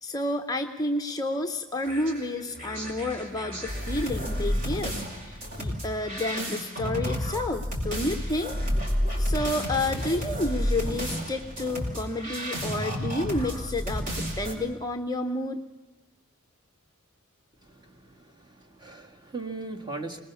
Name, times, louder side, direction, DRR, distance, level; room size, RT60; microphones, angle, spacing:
voice 1, 0.0-8.6 9.2-15.6, left 1 dB, 15° left, 6 dB, 0.7 m, -30 dB
sound 1, 1.8-14.5, equal, 40° right, 5.3 m, -31 dB
voice 2, 17.6-20.2, right 3 dB, 20° right, 3 dB, 2.0 m, -39 dB
25.0 x 20.0 x 7.0 m, 1.1 s
head